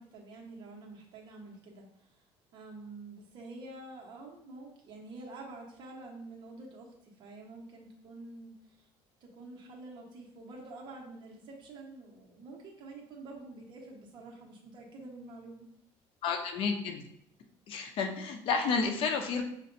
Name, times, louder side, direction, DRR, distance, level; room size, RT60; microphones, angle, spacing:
voice 1, 0.0-2.2 2.5-8.9 9.2-15.7, right 2 dB, 45° right, -1 dB, 1.1 m, -48 dB
voice 2, 16.2-17.0 17.7-19.4, left 5 dB, 55° left, 4 dB, 0.6 m, -31 dB
6.7 x 2.5 x 2.6 m, 0.73 s
cardioid pair, 140°, 11 cm